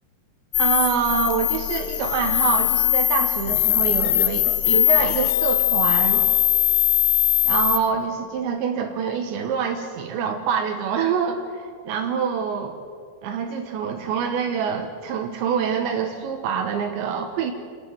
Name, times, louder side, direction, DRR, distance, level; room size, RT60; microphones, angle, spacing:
sound 1, 0.5-7.8, left 14 dB, 75° left, 2.6 m, -20 dB
voice 1, 0.6-6.3 7.5-12.8 13.2-17.5, right 7 dB, 80° right, 3 dB, 3.5 m, -25 dB
29.5 x 10.5 x 9.4 m, 2.1 s
omnidirectional pair, 5.1 m